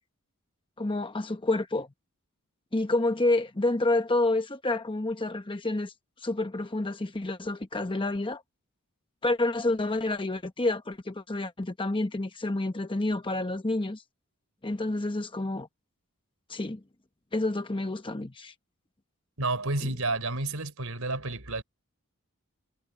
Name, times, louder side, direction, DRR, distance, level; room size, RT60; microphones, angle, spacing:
voice 1, 0.8-1.9 2.7-5.9 6.2-8.4 9.2-14.0 14.6-15.7 16.5-16.8 17.3-18.5 19.8-19.9, left 2 dB, 25° left, 1.0 m, -29 dB
voice 2, 19.4-21.6, right 2 dB, 70° right, 4.5 m, -30 dB
head